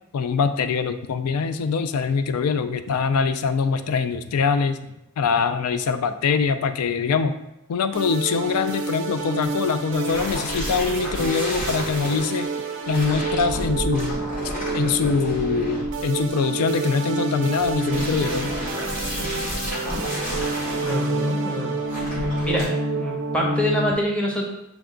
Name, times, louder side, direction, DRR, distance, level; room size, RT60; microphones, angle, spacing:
voice 1, 0.1-4.8 5.2-7.3 7.7-12.5 12.9-14.2 14.7-18.5, left 5 dB, 80° left, 10 dB, 0.4 m, -23 dB
sound 1, 7.9-23.9, right 2 dB, 60° right, 0.6 m, -28 dB
sound 2, 10.0-12.2 12.8-16.3 17.5-20.9 21.8-22.6, left 1 dB, 40° left, 1.3 m, -31 dB
voice 2, 20.9-21.8 22.4-22.7 23.0-24.5, left 1 dB, 5° left, -2 dB, 0.7 m, -26 dB
6.1 x 2.3 x 3.7 m, 0.85 s
head